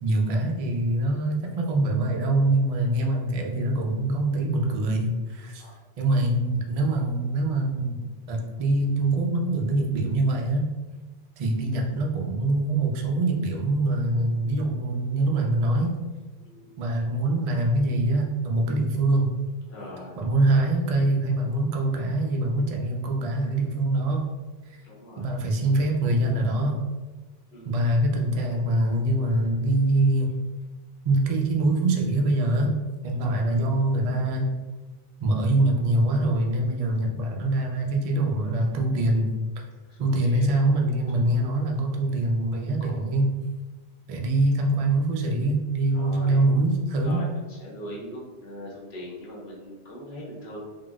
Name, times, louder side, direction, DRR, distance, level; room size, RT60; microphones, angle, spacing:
voice 1, 0.0-5.6 6.0-8.0 8.3-10.7 11.4-16.0 16.8-19.3 20.2-24.2 25.2-26.8 27.6-30.3 31.0-32.7 33.0-34.5 35.2-39.3 40.0-43.3 44.1-47.2, right 2 dB, 55° right, 0 dB, 0.4 m, -24 dB
voice 2, 16.4-16.7 19.7-20.1 24.8-25.3 27.5-27.9 33.4-33.5 39.9-40.5 42.9-43.0 45.9-46.4 47.0-50.6, equal, 75° left, -4 dB, 1.0 m, -41 dB
3.7 x 2.0 x 2.3 m, 1.3 s
omnidirectional pair, 1.1 m